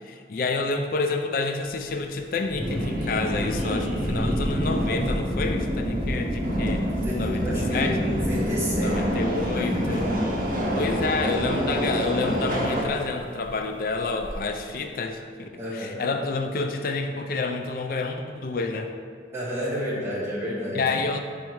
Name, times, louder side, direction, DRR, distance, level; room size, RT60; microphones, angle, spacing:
voice 1, 0.0-6.9 7.2-8.2 8.8-10.1 10.7-18.9 20.7-21.2, left 3 dB, 50° left, 5 dB, 0.4 m, -29 dB
Thunder, 1.7-14.4, equal, 10° left, 0.6 m, -35 dB
Subway metro underground, 2.6-12.8, equal, 50° right, 0.9 m, -27 dB
voice 2, 6.9-10.1 15.6-16.1 19.3-20.8, equal, 15° right, -8 dB, 1.4 m, -31 dB
5.3 x 4.7 x 4.5 m, 2.1 s
head